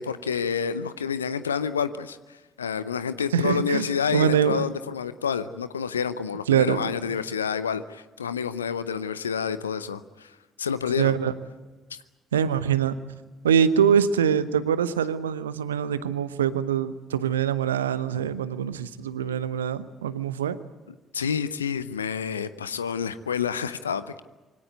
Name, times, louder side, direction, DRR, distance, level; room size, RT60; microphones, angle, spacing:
voice 1, 0.0-10.3 10.6-11.1 21.1-24.2, left 7 dB, 80° left, 14 dB, 0.6 m, -29 dB
voice 2, 3.3-4.6 6.5-6.9 11.0-11.3 12.3-12.9 13.4-20.6, right 8 dB, 80° right, 15 dB, 0.9 m, -24 dB
24.0 x 17.5 x 9.4 m, 1.2 s
figure-of-eight pair, 45°, 0 cm